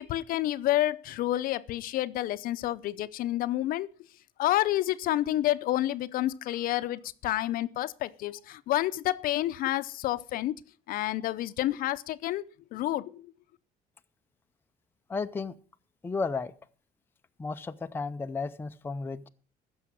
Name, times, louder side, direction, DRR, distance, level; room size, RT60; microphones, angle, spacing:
voice 1, 0.0-3.9 4.4-10.5 10.9-13.3, left 14 dB, 60° left, 0.6 m, -29 dB
voice 2, 15.1-15.5 16.0-16.5 17.4-19.3, left 4 dB, 15° left, 0.5 m, -33 dB
15.0 x 6.3 x 6.2 m
cardioid pair, 140°, 16 cm